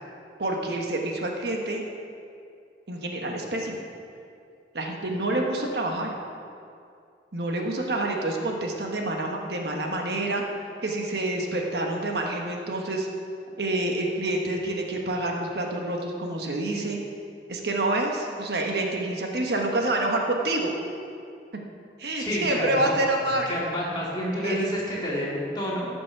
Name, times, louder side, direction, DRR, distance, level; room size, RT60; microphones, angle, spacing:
voice 1, 0.4-1.8 2.9-3.8 4.7-6.1 7.3-10.4 10.8-13.1 13.6-17.0 17.5-20.7 22.0-23.6 24.4-24.6, right 2 dB, 70° right, 1 dB, 1.3 m, -27 dB
voice 2, 22.1-22.9 23.3-25.9, equal, 25° left, -6 dB, 2.6 m, -29 dB
14.5 x 6.1 x 6.0 m, 2.4 s
head